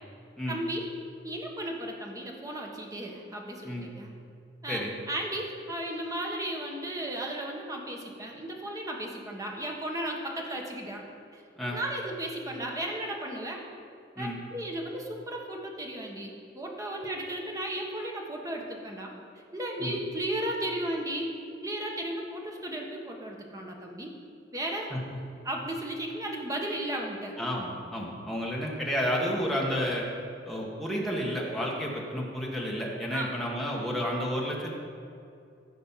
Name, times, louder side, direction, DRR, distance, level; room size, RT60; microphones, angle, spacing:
voice 1, 0.5-0.9 1.2-4.1 4.6-11.0 11.3-11.4 11.7-13.6 14.2-19.1 19.5-21.3 21.6-24.1 24.5-24.9 25.4-27.3 33.1-33.3, right 1 dB, 20° right, 0 dB, 1.3 m, -35 dB
voice 2, 27.4-30.1 30.4-34.7, equal, ahead, -3 dB, 1.5 m, -31 dB
15.0 x 5.3 x 5.7 m, 2.5 s
head